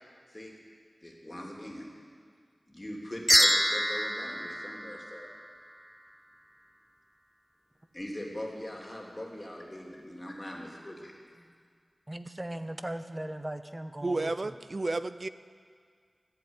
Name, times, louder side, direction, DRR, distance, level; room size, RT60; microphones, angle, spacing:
voice 1, 1.0-1.9 2.7-5.3 7.9-11.4, left 1 dB, 25° left, -1 dB, 2.9 m, -41 dB
sound 1, 3.3-5.7, equal, 5° left, 0.4 m, -27 dB
voice 2, 12.1-14.5, right 1 dB, 20° right, 10 dB, 0.8 m, -38 dB
voice 3, 14.0-15.3, right 2 dB, 50° right, 13 dB, 0.5 m, -31 dB
14.0 x 7.8 x 9.8 m, 2.1 s
wide cardioid pair, 55°, 0 cm